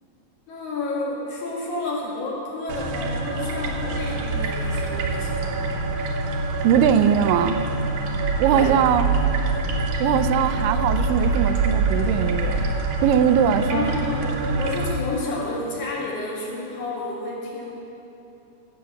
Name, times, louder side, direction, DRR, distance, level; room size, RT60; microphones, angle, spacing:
voice 1, 0.5-5.6 8.4-8.7 13.7-17.7, left 2 dB, 65° left, -4 dB, 3.2 m, -30 dB
sound 1, 2.7-14.9, right 3 dB, 70° right, 2.2 m, -25 dB
voice 2, 6.6-7.6 8.4-9.1 10.0-12.7 13.0-13.9, right 8 dB, 90° right, 11 dB, 2.2 m, -20 dB
16.0 x 7.0 x 6.6 m, 2.9 s
omnidirectional pair, 3.8 m